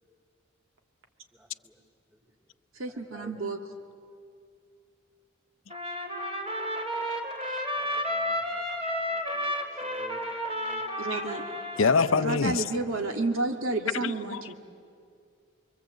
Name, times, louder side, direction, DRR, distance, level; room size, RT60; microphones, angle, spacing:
voice 1, 1.3-1.7 2.1-2.2 2.8-3.5 7.8-8.4 8.8-9.5 9.8-10.2 10.5-10.8 11.7-12.3, right 1 dB, 10° right, 2.8 m, -52 dB
voice 2, 2.8-3.6 11.0-11.4 12.2-14.5, right 2 dB, 70° right, 2.4 m, -30 dB
Trumpet, 5.7-12.3, equal, 30° right, 3.3 m, -32 dB
voice 3, 11.8-12.6 14.3-14.4, left 4 dB, 65° left, 0.7 m, -23 dB
29.0 x 23.0 x 8.2 m
head